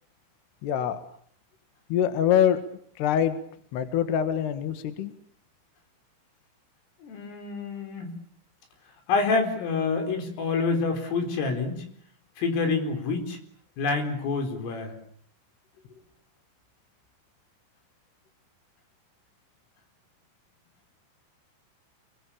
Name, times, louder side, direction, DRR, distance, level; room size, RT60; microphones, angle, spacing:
voice 1, 0.6-1.0 1.9-2.6 3.0-3.4 3.7-5.1, left 9 dB, 65° left, 10 dB, 3.4 m, -24 dB
voice 2, 7.0-8.1 9.1-11.9 12.4-13.4 13.8-15.0, left 4 dB, 85° left, 5 dB, 6.9 m, -27 dB
28.0 x 22.5 x 8.6 m, 0.63 s
omnidirectional pair, 5.7 m